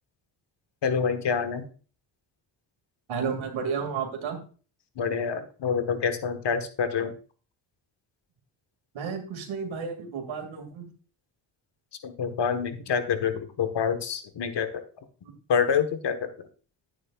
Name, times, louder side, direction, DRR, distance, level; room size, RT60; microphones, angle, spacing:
voice 1, 0.8-1.7 4.9-7.1 12.0-14.7 15.5-16.5, left 6 dB, 60° left, 9 dB, 1.5 m, -27 dB
voice 2, 3.1-4.4 8.9-10.9 15.2-15.3, right 6 dB, 75° right, 3 dB, 2.4 m, -32 dB
10.5 x 8.9 x 2.4 m, 0.39 s
supercardioid pair, 60°, 47 cm